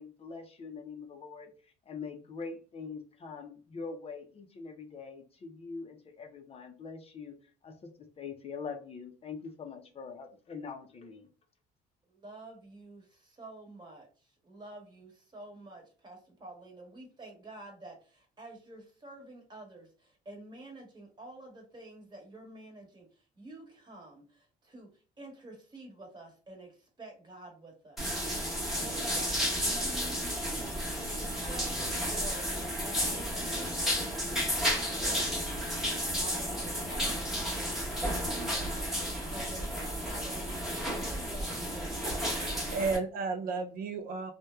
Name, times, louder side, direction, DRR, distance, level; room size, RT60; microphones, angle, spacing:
voice 1, 0.0-1.5 1.9-7.3 7.6-7.7 8.2-11.3, left 5 dB, 35° left, 5 dB, 0.5 m, -43 dB
voice 2, 12.1-14.1 14.4-23.1 23.4-24.9 25.2-28.0 28.5-30.8 31.1-32.5 32.8-35.4 36.2-42.6, right 2 dB, 25° right, 1 dB, 1.2 m, -49 dB
sound 1, 28.0-43.0, equal, ahead, 1.0 m, -32 dB
voice 3, 42.0-44.3, right 4 dB, 60° right, 7 dB, 0.4 m, -34 dB
2.9 x 2.1 x 2.2 m, 0.37 s
cardioid pair, 110°, 17 cm